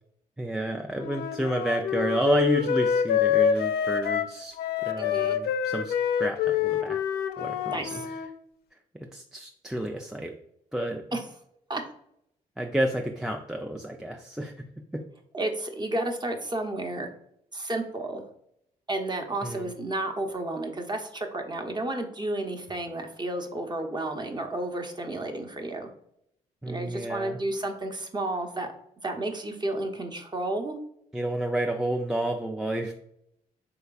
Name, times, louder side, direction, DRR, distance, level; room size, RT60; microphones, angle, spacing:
voice 1, 0.4-4.6 4.8-7.0 7.4-8.2 9.0-10.4 10.7-11.0 12.6-14.7 14.9-15.0 19.4-19.7 26.6-27.4 31.1-32.9, right 1 dB, 5° right, 2 dB, 0.4 m, -30 dB
Wind instrument woodwind instrument, 1.0-8.3, left 8 dB, 60° left, 0.4 m, -26 dB
voice 2, 5.0-5.4 7.7-8.1 11.1-11.2 11.7-11.8 15.3-17.1 17.5-18.2 18.9-25.9 26.7-28.7 29.0-30.8, right 2 dB, 25° right, 4 dB, 0.8 m, -32 dB
3.9 x 3.2 x 2.4 m, 0.73 s
hypercardioid pair, 45°, 18 cm